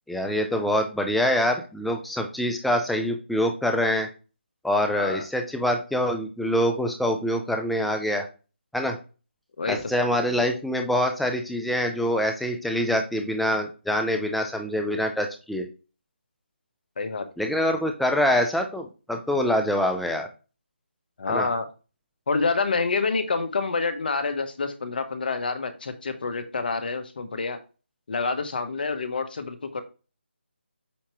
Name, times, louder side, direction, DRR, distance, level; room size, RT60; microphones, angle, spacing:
voice 1, 0.1-4.1 4.6-8.3 8.7-9.0 9.7-15.7 17.4-20.3 21.3-21.5, left 1 dB, ahead, 4 dB, 0.5 m, -25 dB
voice 2, 9.6-9.9 17.0-17.3 21.2-21.7 22.3-27.6 28.1-29.8, left 4 dB, 50° left, 9 dB, 1.1 m, -27 dB
8.6 x 2.9 x 4.5 m, 0.34 s
figure-of-eight pair, 165°, 6 cm